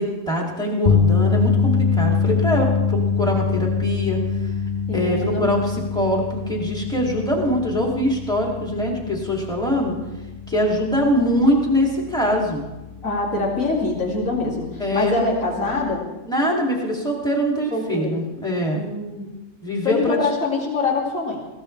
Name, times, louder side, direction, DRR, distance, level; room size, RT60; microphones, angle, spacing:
voice 1, 0.0-4.2 4.9-9.9 10.5-12.6 14.8-15.2 16.3-18.8 19.6-20.2, equal, 5° left, -2 dB, 2.7 m, -23 dB
sound 1, 0.9-13.1 13.4-13.7 15.9-16.0, left 6 dB, 40° left, 0.8 m, -24 dB
voice 2, 4.9-5.5 13.0-16.0 17.7-18.2 18.7-19.3 19.8-21.4, left 3 dB, 60° left, -2 dB, 3.3 m, -24 dB
21.5 x 16.5 x 3.4 m, 1.1 s
omnidirectional pair, 1.6 m